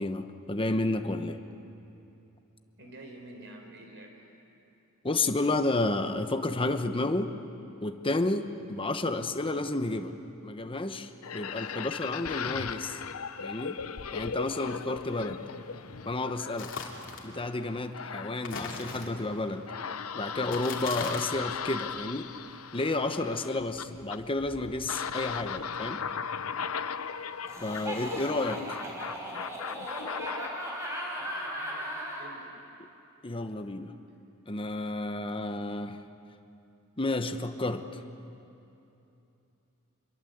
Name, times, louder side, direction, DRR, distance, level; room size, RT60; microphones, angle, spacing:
voice 1, 0.0-1.4 5.0-7.3 7.8-10.1 10.4-13.0 13.4-13.8 14.1-15.4 16.1-16.7 17.2-19.7 20.1-22.3 22.7-26.0 27.6-28.8 33.2-33.9 34.5-36.0 37.0-38.0, left 2 dB, 25° left, 8 dB, 1.0 m, -31 dB
voice 2, 2.8-4.3 27.7-28.3 31.1-32.5, right 1 dB, 55° right, 3 dB, 4.2 m, -49 dB
sound 1, 11.2-30.5, left 6 dB, 80° left, 0.8 m, -38 dB
sound 2, 16.6-17.3 18.4-19.4 20.4-21.4, left 4 dB, 60° left, 2.9 m, -39 dB
Laughter, 27.5-32.3, equal, 15° right, 4.8 m, -37 dB
26.0 x 22.5 x 8.0 m, 2.8 s
head